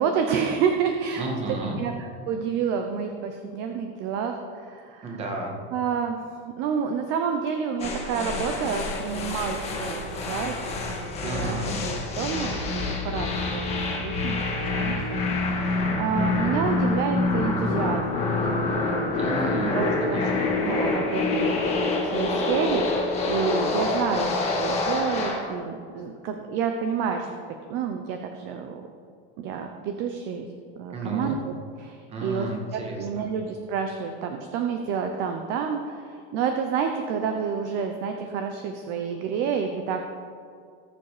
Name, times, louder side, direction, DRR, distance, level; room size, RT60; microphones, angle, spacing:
voice 1, 0.0-1.9 2.3-5.1 5.7-10.5 10.9-11.6 11.8-13.6 14.0-15.5 16.0-19.1 19.7-23.0 23.3-27.3 27.7-28.9 29.4-30.4 30.8-40.0, right 6 dB, 40° right, 5 dB, 0.8 m, -29 dB
voice 2, 1.2-1.8 5.0-5.6 11.2-11.8 19.2-20.6 30.9-31.4 32.1-33.2, right 2 dB, 20° right, 0 dB, 2.0 m, -32 dB
sound 1, 7.8-25.5, left 3 dB, 20° left, 1.8 m, -26 dB
19.0 x 7.2 x 5.0 m, 2.3 s
supercardioid pair, 175°, 29 cm